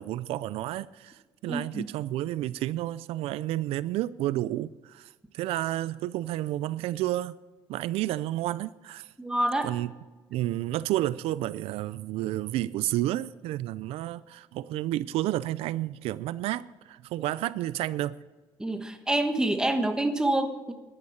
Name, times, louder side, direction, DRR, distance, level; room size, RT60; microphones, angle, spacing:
voice 1, 0.0-7.4 7.7-9.1 9.6-9.9 10.3-18.1, right 14 dB, 85° right, 18 dB, 0.4 m, -31 dB
voice 2, 1.5-1.9 9.2-9.7 18.6-20.7, right 1 dB, 5° right, 7 dB, 1.3 m, -27 dB
11.5 x 10.5 x 7.1 m, 1.2 s
cardioid pair, 125°, 10 cm